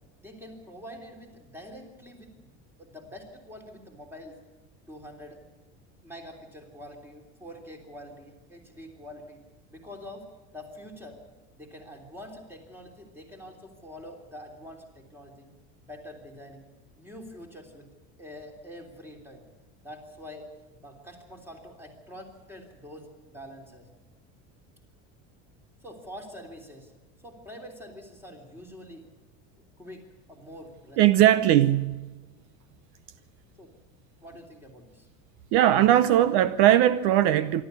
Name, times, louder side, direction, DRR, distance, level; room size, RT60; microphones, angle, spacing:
voice 1, 0.2-2.5 2.8-4.4 4.9-5.4 6.0-9.4 9.7-10.3 10.5-11.2 11.5-15.5 15.8-16.7 17.0-17.9 18.2-19.4 19.8-20.5 20.8-23.9 25.8-26.9 27.2-29.0 29.8-31.4 33.6-33.7 34.2-35.1, equal, 5° right, 3.3 m, -45 dB
voice 2, 31.0-32.0 35.5-37.6, right 12 dB, 60° right, 0.9 m, -19 dB
25.5 x 12.5 x 8.3 m
cardioid pair, 170°, 34 cm